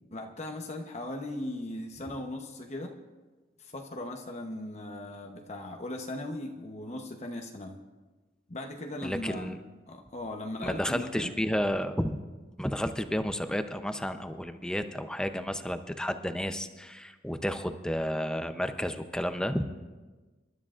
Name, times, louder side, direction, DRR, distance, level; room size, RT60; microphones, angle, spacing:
voice 1, 0.1-2.9 3.6-7.8 8.5-9.5 9.9-11.4, left 1 dB, 40° left, 2 dB, 0.9 m, -38 dB
voice 2, 9.0-9.6 10.6-12.2 12.6-19.6, equal, 5° left, 8 dB, 0.6 m, -31 dB
27.5 x 12.5 x 2.5 m, 1.3 s
head